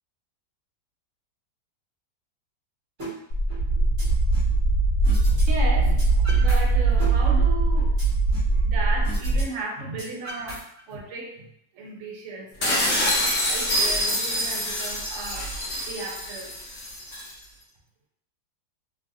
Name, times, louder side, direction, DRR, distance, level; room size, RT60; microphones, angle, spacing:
sound 1, 3.0-3.1 3.5-4.5 5.0-5.4 5.7-6.6 6.9-8.6 9.0-9.4 9.7-11.0, right 2 dB, 30° right, 1.4 m, -37 dB
sound 2, 3.3-9.4, right 2 dB, 85° left, 1.3 m, -21 dB
voice 1, 5.5-8.0 8.3-13.0 13.5-16.6, right 3 dB, 60° right, 0 dB, 0.9 m, -35 dB
sound 3, 12.6-17.3, left 1 dB, 50° left, 1.0 m, -26 dB
3.0 x 2.4 x 2.7 m, 0.71 s
omnidirectional pair, 1.7 m